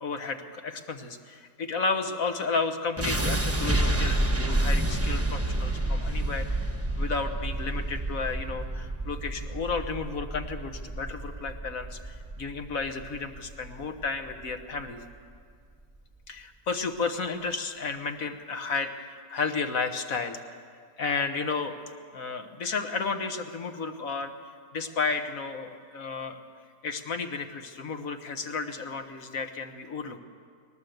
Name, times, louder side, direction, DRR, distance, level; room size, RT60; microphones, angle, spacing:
voice 1, 0.0-6.7 7.0-15.0 16.3-20.6 21.0-21.7 22.1-24.3 24.7-26.4 26.8-30.2, left 4 dB, 55° left, 6 dB, 1.5 m, -32 dB
sound 1, 3.0-15.0, right 1 dB, 10° right, 0.8 m, -29 dB
20.0 x 19.0 x 7.9 m, 2.1 s
omnidirectional pair, 1.9 m